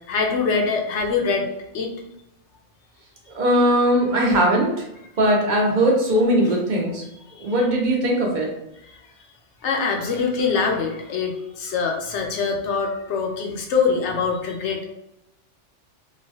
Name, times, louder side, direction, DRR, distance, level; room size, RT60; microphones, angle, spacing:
voice 1, 0.1-1.5 1.7-1.9 7.4-7.5 8.9-9.0 9.6-14.8, left 5 dB, 75° left, 2 dB, 0.9 m, -24 dB
voice 2, 3.3-4.8 5.2-7.0 7.4-8.5, right 1 dB, 45° right, -2 dB, 0.7 m, -19 dB
3.0 x 2.2 x 2.6 m, 0.88 s
omnidirectional pair, 1.2 m